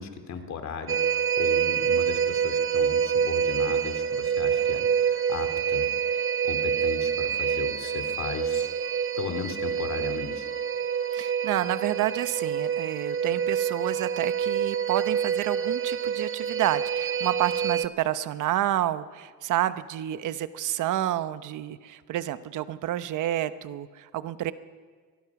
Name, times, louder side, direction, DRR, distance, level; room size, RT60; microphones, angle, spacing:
voice 1, 0.0-5.9 6.4-8.7 9.2-10.5, left 6 dB, 65° left, 7 dB, 2.6 m, -36 dB
sound 1, 0.9-17.9, right 8 dB, 45° right, 0.9 m, -27 dB
voice 2, 11.1-24.5, right 13 dB, 85° right, 12 dB, 1.0 m, -29 dB
23.5 x 19.5 x 6.0 m, 1.5 s
cardioid pair, 90°, 30 cm